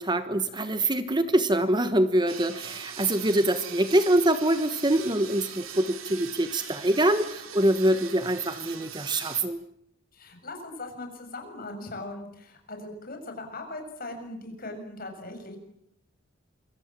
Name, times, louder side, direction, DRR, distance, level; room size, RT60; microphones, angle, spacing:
voice 1, 0.0-9.6, right 1 dB, 20° right, 11 dB, 1.1 m, -24 dB
sound 1, 2.3-9.4, right 8 dB, 75° right, 3.2 m, -41 dB
voice 2, 10.1-15.6, left 2 dB, 45° left, 4 dB, 7.0 m, -39 dB
27.5 x 24.5 x 7.5 m, 0.75 s
head